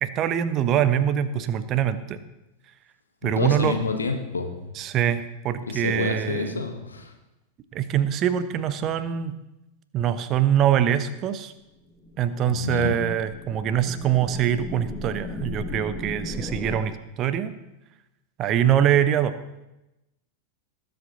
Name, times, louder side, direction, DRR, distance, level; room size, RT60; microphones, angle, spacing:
voice 1, 0.0-2.2 3.2-3.8 4.7-6.6 7.7-9.4 9.9-11.5 12.2-17.5 18.4-19.3, right 10 dB, 35° right, 12 dB, 0.8 m, -24 dB
voice 2, 3.2-4.7 5.7-7.1 12.5-13.1, left 4 dB, 75° left, 5 dB, 1.5 m, -28 dB
sound 1, 11.9-16.8, left 2 dB, ahead, 1.7 m, -36 dB
19.5 x 7.9 x 3.9 m, 0.95 s
figure-of-eight pair, 90°, 0 cm